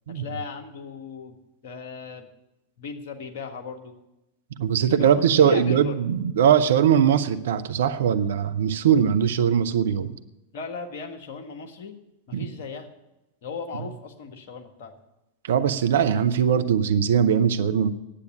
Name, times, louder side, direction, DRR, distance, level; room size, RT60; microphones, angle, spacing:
voice 1, 0.1-1.4 1.6-2.3 2.8-3.9 4.9-5.9 10.5-12.0 12.3-12.9 13.4-14.9, left 5 dB, 55° left, 5 dB, 1.6 m, -37 dB
voice 2, 4.6-10.1 12.3-12.5 15.5-17.9, right 8 dB, 60° right, 10 dB, 0.7 m, -21 dB
10.0 x 8.4 x 9.9 m, 0.94 s
figure-of-eight pair, 90°, 0 cm